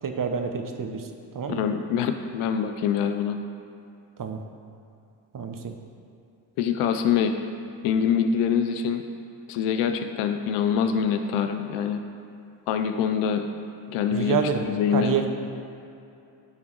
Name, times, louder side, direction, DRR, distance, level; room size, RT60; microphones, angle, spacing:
voice 1, 0.0-1.1 1.3-1.6 4.2-4.4 5.3-5.7 14.1-14.6 14.9-15.3, right 6 dB, 40° right, 6 dB, 0.9 m, -28 dB
voice 2, 1.5-3.4 6.6-7.4 7.8-9.0 9.5-12.0 12.7-13.5 13.9-15.2, left 7 dB, 85° left, 7 dB, 0.6 m, -25 dB
9.7 x 3.7 x 4.7 m, 2.7 s
supercardioid pair, 45°, 49 cm